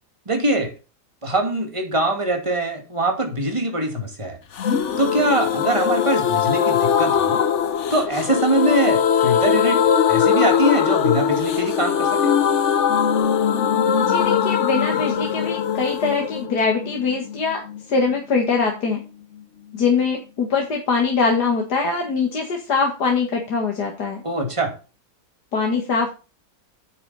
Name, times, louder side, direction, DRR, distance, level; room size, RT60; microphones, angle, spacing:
voice 1, 0.3-0.7 1.2-4.4 5.0-7.4 7.9-9.8 10.1-12.3 24.2-24.7, right 1 dB, 20° right, 3 dB, 2.6 m, -22 dB
sound 1, 4.6-18.2 18.4-18.5 18.8-18.9, left 8 dB, 50° left, 1.1 m, -21 dB
voice 2, 14.1-17.6 17.9-19.0 19.7-24.2 25.5-26.1, left 4 dB, 75° left, 1 dB, 2.4 m, -22 dB
9.8 x 8.3 x 4.2 m, 0.33 s
omnidirectional pair, 1.7 m